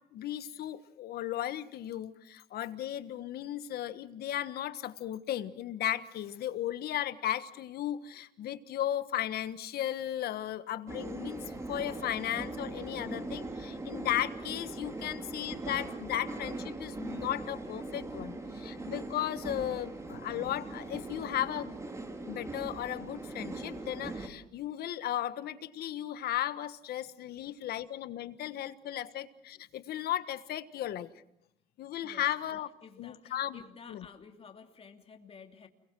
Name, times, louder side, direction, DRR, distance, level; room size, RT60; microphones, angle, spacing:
voice 1, 0.1-21.7 22.3-31.1 31.8-32.7 33.0-33.6 33.9-34.1, left 12 dB, 70° left, 12 dB, 1.4 m, -35 dB
sound 1, 10.9-24.3, right 2 dB, 15° right, 3.1 m, -40 dB
voice 2, 32.8-35.7, left 6 dB, 35° left, 4 dB, 2.8 m, -52 dB
29.5 x 22.5 x 6.1 m, 0.80 s
cardioid pair, 110°, 17 cm